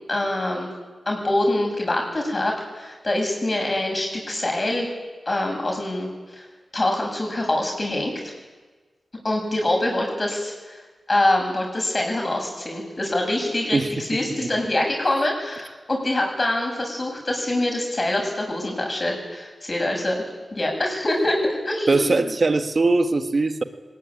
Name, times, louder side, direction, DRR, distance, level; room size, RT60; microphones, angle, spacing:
voice 1, 0.1-0.7 1.1-4.9 5.3-6.1 6.3-6.4 6.7-8.1 9.2-10.8 11.1-20.2 20.5-21.4 21.6-22.3, left 1 dB, 40° left, 1 dB, 7.9 m, -24 dB
voice 2, 21.9-23.6, right 3 dB, 55° right, 8 dB, 1.7 m, -20 dB
19.0 x 17.5 x 10.0 m, 1.3 s
cardioid pair, 40°, 0 cm